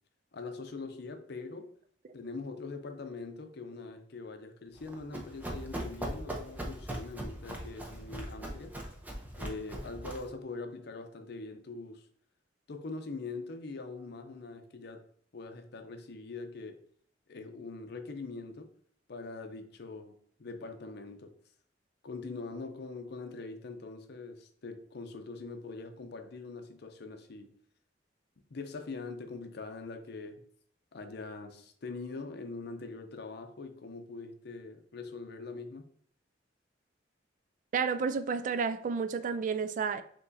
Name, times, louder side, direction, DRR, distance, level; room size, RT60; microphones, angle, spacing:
voice 1, 0.3-1.8 2.1-8.8 9.4-12.1 12.7-15.1 15.3-16.8 17.3-18.7 19.1-21.4 22.0-27.6 28.5-30.4 30.9-35.8, left 3 dB, 60° left, 0.6 m, -43 dB
Run, 4.8-10.3, right 1 dB, 10° right, 0.7 m, -40 dB
voice 2, 37.7-40.0, right 5 dB, 45° right, 0.3 m, -31 dB
5.9 x 3.0 x 2.7 m
head